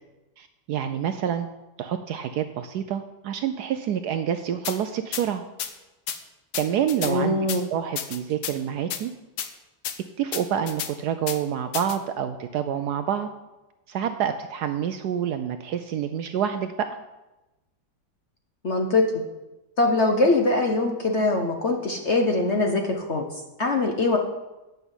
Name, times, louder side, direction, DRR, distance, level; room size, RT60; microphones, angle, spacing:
voice 1, 0.4-1.5 1.8-5.4 6.5-9.1 10.2-13.3 13.9-17.0, right 9 dB, 75° right, 9 dB, 1.0 m, -27 dB
sound 1, 4.6-4.8 5.1-5.2 5.6-5.7 6.1-6.2 6.5-7.1 7.5-7.6 8.0-8.5 8.9-9.0 9.4-9.5 9.8-10.0 10.3-10.9 11.3-11.4 11.7-12.0, left 9 dB, 65° left, 1.3 m, -31 dB
voice 2, 7.0-7.6 18.6-19.0 19.8-24.2, left 2 dB, 50° left, 3 dB, 0.9 m, -22 dB
9.1 x 5.6 x 8.1 m, 1.0 s
omnidirectional pair, 2.1 m